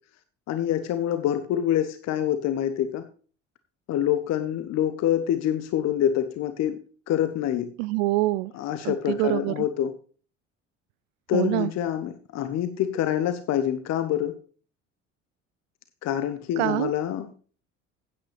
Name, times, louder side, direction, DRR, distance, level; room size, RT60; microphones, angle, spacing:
voice 1, 0.5-3.0 3.9-6.8 7.1-7.7 8.5-9.9 11.3-14.3 16.0-17.3, left 10 dB, 45° left, 11 dB, 1.0 m, -26 dB
voice 2, 7.8-8.5 8.8-9.5 11.3-11.7 16.6-16.9, right 19 dB, 60° right, 17 dB, 0.5 m, -25 dB
16.0 x 8.7 x 3.3 m, 0.41 s
figure-of-eight pair, 60°, 37 cm